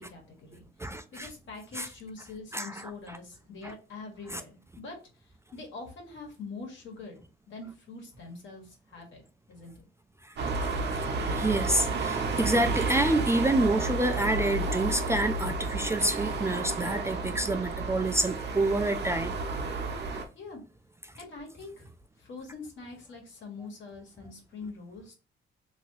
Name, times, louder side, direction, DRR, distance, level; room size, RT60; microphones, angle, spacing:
voice 1, 0.0-0.7 1.1-5.0 5.5-9.2 9.5-9.7 20.3-20.6 21.2-21.9 22.2-25.1, left 3 dB, 70° left, 1.4 m, -44 dB
voice 2, 0.8-1.3 1.7-1.9 2.5-2.9 3.6-3.7 4.3-4.4 10.2-10.3 10.9-19.4 20.1-20.2, right 1 dB, 15° right, 0.3 m, -28 dB
sound 1, 10.4-20.2, right 3 dB, 55° right, 0.8 m, -31 dB
2.8 x 2.8 x 2.9 m
cardioid pair, 90°, 20 cm